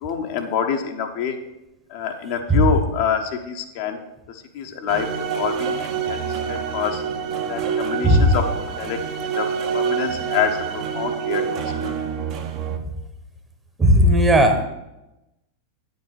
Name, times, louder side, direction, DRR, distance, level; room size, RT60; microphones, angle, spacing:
voice 1, 0.0-1.4 1.9-4.0 4.3-7.0 7.5-8.5 8.8-9.5 9.7-11.9, left 7 dB, 50° left, 4 dB, 1.0 m, -26 dB
sound 1, 4.9-12.8, right 7 dB, 40° right, 0.9 m, -26 dB
voice 2, 8.0-8.4 13.8-14.6, equal, 15° right, 6 dB, 1.1 m, -15 dB
8.7 x 5.4 x 6.4 m, 0.94 s
figure-of-eight pair, 90°, 0 cm